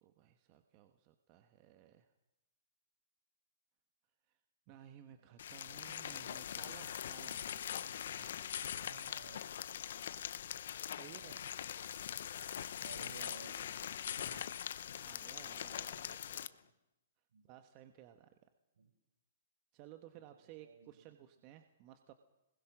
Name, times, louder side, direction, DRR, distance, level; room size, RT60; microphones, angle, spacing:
voice 1, 0.0-2.1 4.3-4.4 4.7-8.6 10.9-11.4 14.2-16.5 17.4-18.3 19.7-22.1, right 11 dB, 35° right, 7 dB, 1.3 m, -58 dB
sound 1, 5.4-16.5, left 9 dB, 65° left, 0.9 m, -42 dB
voice 2, 8.8-11.4 12.7-14.4 16.1-16.7 17.3-17.5 18.8-18.9 20.6-20.9, right 5 dB, 75° right, 6 dB, 5.2 m, -59 dB
26.0 x 21.0 x 6.2 m, 0.94 s
hypercardioid pair, 150°, 0 cm